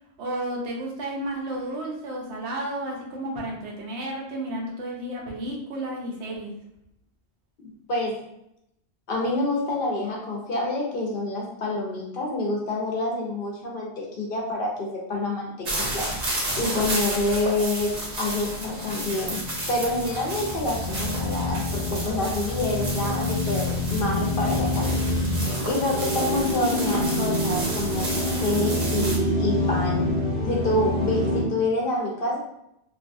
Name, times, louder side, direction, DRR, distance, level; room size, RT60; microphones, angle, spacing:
voice 1, 0.2-6.5 16.5-16.7, right 1 dB, 85° right, -1 dB, 0.9 m, -32 dB
voice 2, 7.6-8.2 9.1-16.1 16.6-17.9 18.2-19.4 19.7-25.0 25.7-30.1 30.4-32.4, left 2 dB, 55° left, -1 dB, 0.8 m, -27 dB
sound 1, 15.6-29.2, right 1 dB, 50° right, 0.8 m, -32 dB
sound 2, 18.1-31.4, left 1 dB, 35° left, 1.1 m, -27 dB
2.6 x 2.3 x 2.5 m, 0.80 s
omnidirectional pair, 1.1 m